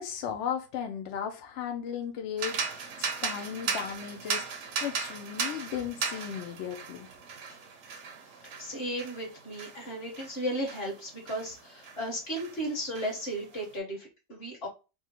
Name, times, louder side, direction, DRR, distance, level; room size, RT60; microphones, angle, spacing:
voice 1, 0.0-2.6 3.0-7.1, left 8 dB, 75° left, 0.6 m, -36 dB
sound 1, 2.4-12.0 12.4-13.6, right 5 dB, 60° right, 0.8 m, -37 dB
voice 2, 8.6-14.7, equal, 40° left, 1.5 m, -35 dB
3.5 x 2.1 x 2.8 m
omnidirectional pair, 1.8 m